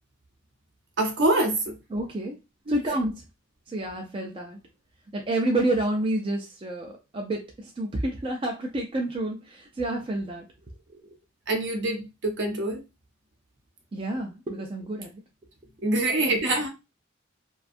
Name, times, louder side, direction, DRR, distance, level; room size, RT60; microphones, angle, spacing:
voice 1, 1.0-1.8 2.7-2.8 11.5-12.8 15.8-16.7, right 2 dB, 60° right, 0.7 m, -25 dB
voice 2, 1.9-2.4 2.7-3.2 3.7-4.6 5.1-10.4 10.9-11.1 13.9-15.1 16.2-16.4, right 1 dB, 25° right, 0.3 m, -29 dB
2.5 x 2.2 x 2.5 m
head